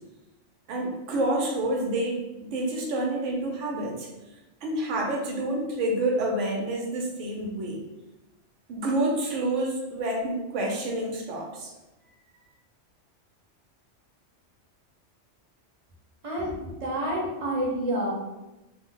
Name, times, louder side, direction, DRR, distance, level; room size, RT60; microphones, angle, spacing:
voice 1, 0.7-4.1 4.6-7.8 8.7-11.7, right 1 dB, 85° right, 0 dB, 1.0 m, -28 dB
voice 2, 16.2-18.1, right 1 dB, 35° right, -4 dB, 0.7 m, -29 dB
2.5 x 2.1 x 3.7 m, 1.0 s
omnidirectional pair, 1.2 m